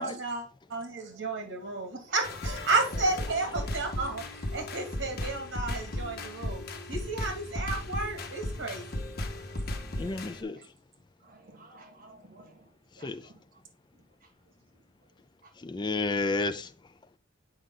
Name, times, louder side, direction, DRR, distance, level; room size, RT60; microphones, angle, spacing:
voice 1, 0.0-6.6 6.9-9.0, right 3 dB, 90° right, 2.1 m, -32 dB
voice 2, 1.0-2.2 9.4-10.6 11.2-13.6 13.9-14.8 15.4-15.5, right 2 dB, 45° right, 1.5 m, -57 dB
sound 1, 2.2-10.4, left 1 dB, 55° left, 1.2 m, -36 dB
voice 3, 10.0-10.6 13.0-13.2 15.6-16.7, left 3 dB, 25° left, 0.4 m, -31 dB
8.0 x 4.9 x 3.7 m
head